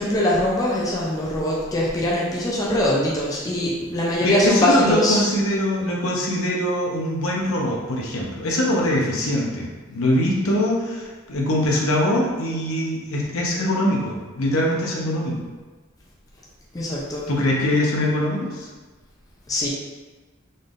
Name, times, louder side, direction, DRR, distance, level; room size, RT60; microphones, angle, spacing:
voice 1, 0.0-5.2 16.7-17.3 19.5-19.7, left 1 dB, 15° left, -5 dB, 0.5 m, -22 dB
voice 2, 4.2-15.3 17.3-18.7, left 1 dB, 80° left, -2 dB, 0.8 m, -22 dB
4.0 x 3.5 x 2.5 m, 1.3 s
head